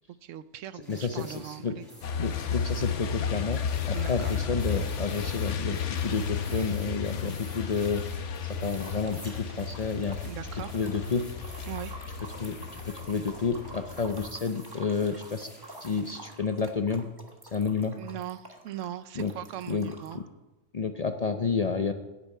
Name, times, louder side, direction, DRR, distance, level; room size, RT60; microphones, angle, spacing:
voice 1, 0.2-1.8 3.9-4.3 10.2-10.8 11.6-12.0 18.0-20.2, right 11 dB, 80° right, 14 dB, 1.0 m, -39 dB
voice 2, 0.7-1.7 2.2-3.6 3.9-8.3 8.6-10.2 10.7-11.2 12.3-12.6 12.9-15.5 15.8-17.1 17.5-18.0 19.2-19.3 19.7-20.2 20.7-21.9, left 5 dB, 45° left, 7 dB, 0.5 m, -30 dB
sound 1, 0.8-16.3, equal, ahead, 5.1 m, -51 dB
Truck, 2.0-14.3, left 6 dB, 75° left, 1.2 m, -33 dB
sound 2, 8.7-20.2, right 2 dB, 20° right, 1.3 m, -49 dB
10.0 x 7.1 x 8.2 m, 1.1 s
omnidirectional pair, 1.3 m